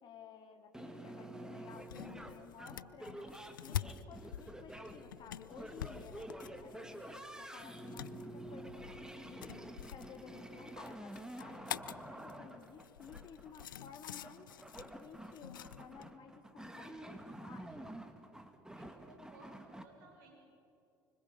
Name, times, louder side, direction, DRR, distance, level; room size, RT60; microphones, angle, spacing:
voice 1, 0.0-3.2 3.6-9.5 9.9-14.5 14.9-18.0, left 6 dB, 45° left, 4 dB, 2.7 m, -55 dB
sound 1, 0.7-19.8, right 1 dB, 5° right, 2.4 m, -49 dB
sound 2, 1.7-16.1, left 11 dB, 85° left, 0.4 m, -47 dB
voice 2, 18.8-20.4, right 2 dB, 75° right, 0 dB, 6.0 m, -59 dB
25.5 x 25.0 x 5.3 m, 2.9 s
hypercardioid pair, 65°, 11 cm